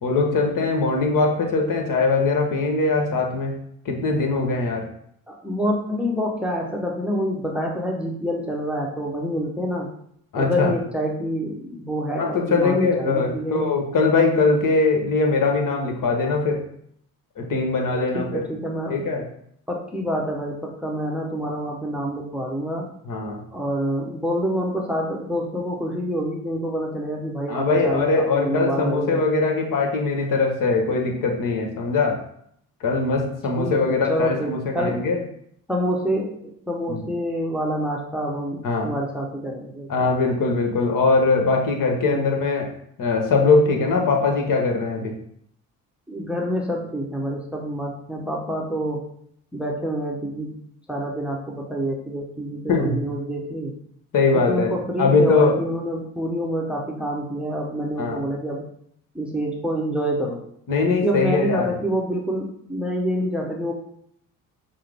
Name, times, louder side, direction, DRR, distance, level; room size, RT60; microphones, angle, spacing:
voice 1, 0.0-3.6 3.8-4.9 10.3-10.7 12.2-16.6 17.4-18.4 18.9-19.2 23.0-23.4 27.5-32.2 32.8-35.2 36.9-37.0 38.6-38.9 39.9-42.7 43.0-45.1 52.7-53.0 54.1-54.7 55.0-55.6 58.0-58.2 60.7-61.7, left 3 dB, 50° left, 2 dB, 1.1 m, -21 dB
voice 2, 5.3-9.9 10.3-13.7 18.1-19.0 19.7-22.9 23.5-29.2 33.6-35.1 35.7-40.1 42.0-42.3 46.1-49.1 49.5-50.6 50.9-53.7 54.3-58.6 59.1-60.4 60.9-63.7, equal, 5° right, 0 dB, 0.8 m, -27 dB
5.6 x 2.0 x 3.4 m, 0.69 s
hypercardioid pair, 55°, 42 cm